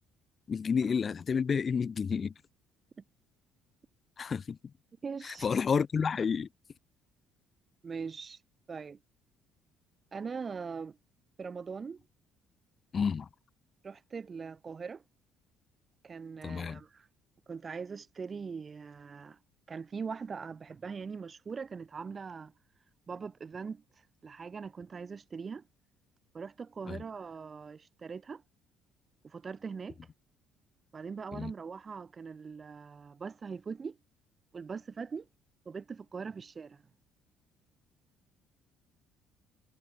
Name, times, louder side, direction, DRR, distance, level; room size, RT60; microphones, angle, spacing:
voice 1, 0.5-2.3 4.2-4.6 5.2-6.5 12.9-13.3 16.4-16.8 26.9-27.0 31.3-31.5, left 6 dB, 40° left, 2.8 m, -30 dB
voice 2, 5.0-5.5 7.8-8.4 8.7-9.0 10.1-11.0 11.4-12.0 13.8-15.0 16.0-17.1 17.5-19.4 19.7-22.5 23.1-23.8 24.2-25.6 26.3-28.4 29.2-30.0 30.9-34.0 34.5-35.3 35.7-36.8, right 5 dB, 35° right, 2.3 m, -41 dB
figure-of-eight pair, 50°, 0 cm